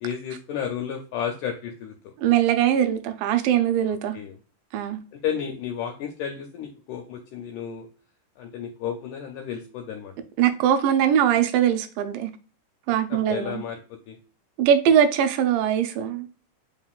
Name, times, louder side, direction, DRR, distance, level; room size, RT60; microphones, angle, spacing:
voice 1, 0.0-2.1 3.9-4.4 5.1-7.9 8.4-10.1 13.1-14.2, left 8 dB, 80° left, 2.0 m, -32 dB
voice 2, 2.2-4.2 4.7-5.0 10.4-12.3 12.9-13.6 14.6-16.3, right 9 dB, 85° right, 2.2 m, -21 dB
5.1 x 3.6 x 2.4 m
omnidirectional pair, 3.9 m